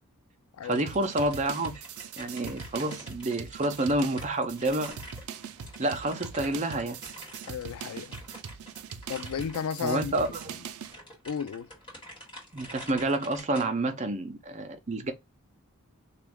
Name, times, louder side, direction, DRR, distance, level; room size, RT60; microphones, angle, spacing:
voice 1, 0.6-1.8 2.2-5.0 5.8-7.0 9.8-10.5 12.5-15.1, right 2 dB, 35° right, 0.6 m, -29 dB
sound 1, 0.7-13.7, equal, 25° left, 2.0 m, -47 dB
sound 2, 0.9-11.0, right 7 dB, 85° right, 0.4 m, -42 dB
voice 2, 7.4-8.1 9.1-10.3 11.2-11.7, left 7 dB, 80° left, 0.4 m, -33 dB
3.0 x 2.4 x 3.4 m
head